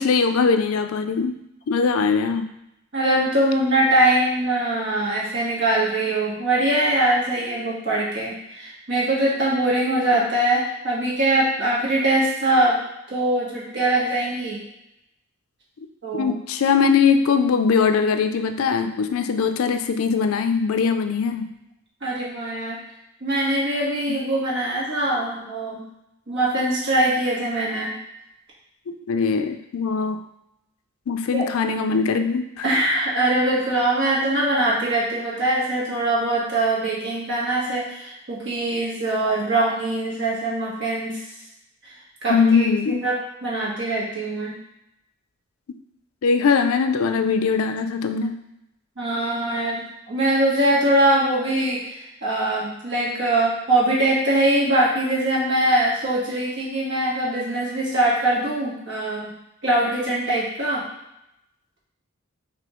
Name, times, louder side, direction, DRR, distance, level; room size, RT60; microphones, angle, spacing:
voice 1, 0.0-1.3 1.7-2.5 16.1-21.5 24.1-24.2 28.9-30.2 31.1-32.6 42.3-43.0 46.2-48.4, left 5 dB, 75° left, 8 dB, 0.4 m, -21 dB
voice 2, 2.9-12.8 13.1-14.6 16.0-16.3 22.0-22.8 23.2-25.8 26.3-27.9 31.3-31.4 32.6-41.2 41.8-41.9 42.2-44.5 49.0-59.3 59.6-60.9, right 1 dB, 55° right, -5 dB, 1.5 m, -22 dB
6.1 x 2.8 x 3.0 m, 0.85 s
head